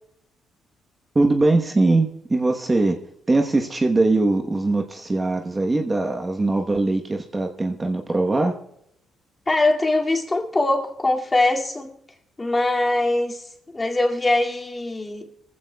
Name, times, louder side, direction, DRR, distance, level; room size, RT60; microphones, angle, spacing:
voice 1, 1.1-3.0 3.3-8.5, right 2 dB, 20° right, 1.1 m, -21 dB
voice 2, 9.5-11.9 12.4-15.3, left 2 dB, 20° left, 2.4 m, -22 dB
24.0 x 15.0 x 2.3 m
cardioid pair, 90°, 0 cm